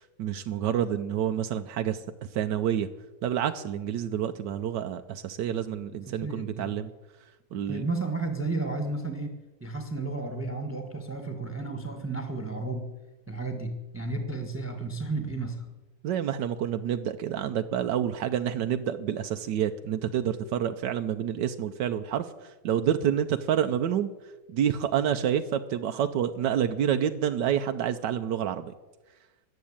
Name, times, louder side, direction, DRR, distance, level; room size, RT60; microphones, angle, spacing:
voice 1, 0.2-2.0 2.3-2.9 3.2-6.9 7.5-7.9 16.0-22.2 22.6-24.1 24.5-28.7, right 9 dB, 85° right, 7 dB, 1.4 m, -28 dB
voice 2, 6.0-6.8 7.7-12.9 13.3-15.7, right 3 dB, 10° right, 6 dB, 1.5 m, -33 dB
14.5 x 10.5 x 8.7 m, 1.1 s
omnidirectional pair, 1.8 m